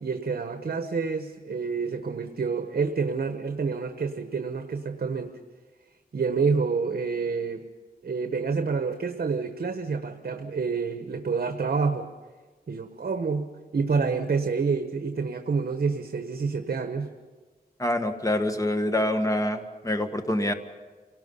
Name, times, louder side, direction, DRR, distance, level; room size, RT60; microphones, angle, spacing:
voice 1, 0.0-5.4 6.1-7.7 8.0-12.1 12.7-13.5 13.7-17.1, right 5 dB, 65° right, 6 dB, 1.2 m, -28 dB
voice 2, 17.8-20.5, left 1 dB, 20° left, 6 dB, 1.6 m, -26 dB
29.0 x 18.5 x 5.6 m, 1.3 s
wide cardioid pair, 95°, 16 cm